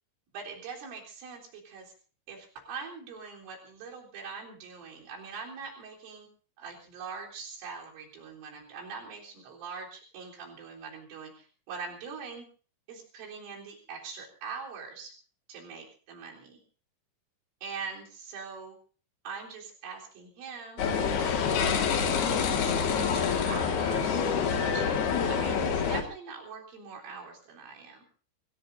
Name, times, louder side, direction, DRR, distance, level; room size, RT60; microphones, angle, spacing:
voice 1, 0.3-1.9 2.3-6.3 6.6-12.4 12.9-15.1 15.5-16.6 17.6-18.8 19.2-20.8 21.3-22.4 22.6-24.2 24.7-28.0, right 5 dB, 85° right, -2 dB, 6.4 m, -43 dB
sound 1, 20.8-26.0, left 6 dB, 60° left, 3.6 m, -27 dB
26.5 x 19.0 x 2.7 m, 0.41 s
omnidirectional pair, 5.6 m